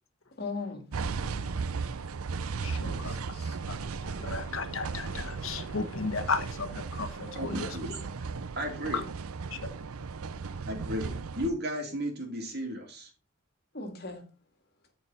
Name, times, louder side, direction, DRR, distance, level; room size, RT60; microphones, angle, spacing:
voice 1, 0.4-0.9 2.7-3.6 7.0-7.1 7.3-7.6 13.7-14.2, left 3 dB, 45° left, 2.1 m, -39 dB
sound 1, 0.9-11.5, right 5 dB, 80° right, 0.6 m, -36 dB
voice 2, 2.6-3.1 3.7-7.7 8.9-9.0 9.5-9.7, left 4 dB, 65° left, 1.1 m, -35 dB
voice 3, 7.3-8.0 8.6-9.0 10.6-13.1, equal, 50° right, 2.8 m, -34 dB
14.0 x 4.7 x 4.2 m
head